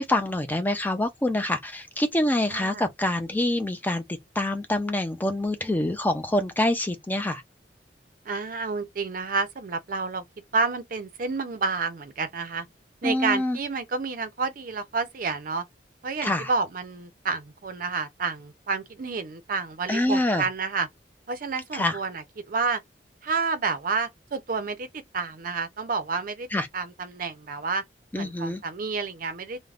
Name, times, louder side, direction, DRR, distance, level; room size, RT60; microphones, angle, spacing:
voice 1, 0.0-4.0 4.4-7.4 13.0-13.6 16.2-16.5 19.9-20.4 21.7-22.0 26.5-26.7 28.1-28.6, left 1 dB, 10° left, 0.4 m, -26 dB
voice 2, 2.5-2.9 8.2-10.2 10.5-12.7 13.0-15.6 16.0-20.9 21.3-22.8 23.2-26.5 26.7-27.8 28.1-29.6, right 4 dB, 50° right, 0.5 m, -29 dB
3.3 x 2.1 x 2.4 m
head